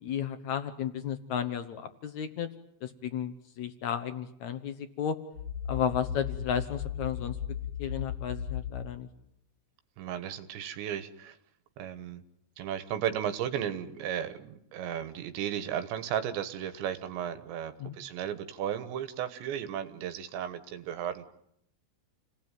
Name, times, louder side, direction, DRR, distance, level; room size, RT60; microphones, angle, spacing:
voice 1, 0.0-2.5 2.8-5.2 5.7-7.4 7.8-9.1 17.8-17.9, left 8 dB, 70° left, 9 dB, 1.7 m, -33 dB
sound 1, 5.3-8.9, left 8 dB, 30° right, 1.2 m, -36 dB
voice 2, 10.0-11.4 11.8-12.2 12.6-21.2, right 10 dB, 80° right, 11 dB, 3.6 m, -35 dB
29.0 x 19.0 x 9.2 m, 0.76 s
omnidirectional pair, 5.1 m